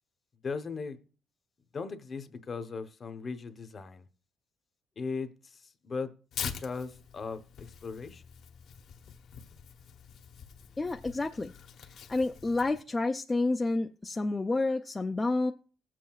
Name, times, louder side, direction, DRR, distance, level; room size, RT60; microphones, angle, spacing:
voice 1, 0.4-1.0 1.7-4.1 5.0-6.1 6.4-8.2, left 4 dB, 35° left, 0.8 m, -38 dB
Tearing, 6.3-12.8, left 7 dB, 65° left, 0.9 m, -44 dB
voice 2, 10.8-11.5 11.9-15.5, left 2 dB, 15° left, 0.4 m, -29 dB
19.0 x 7.6 x 2.3 m
cardioid pair, 135°, 0 cm